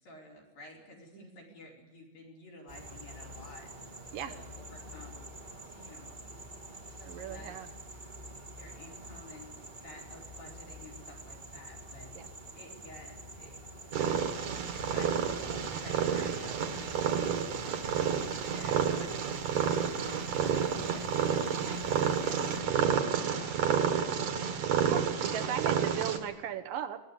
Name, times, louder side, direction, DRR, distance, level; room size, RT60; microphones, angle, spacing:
voice 1, 0.0-3.7 4.2-5.3 5.7-6.2 7.0-7.6 8.6-12.1 12.5-13.5 14.0-14.3 14.8-19.2 19.6-24.4, left 1 dB, 70° left, 1 dB, 6.2 m, -51 dB
sound 1, 2.7-22.6, right 1 dB, 25° right, 1.1 m, -47 dB
voice 2, 7.0-7.7 12.1-12.3 24.9-27.0, right 10 dB, 70° right, 6 dB, 2.4 m, -37 dB
Purr, 13.9-26.2, right 7 dB, 55° right, 2.8 m, -30 dB
22.5 x 18.0 x 9.8 m, 1.2 s
omnidirectional pair, 4.3 m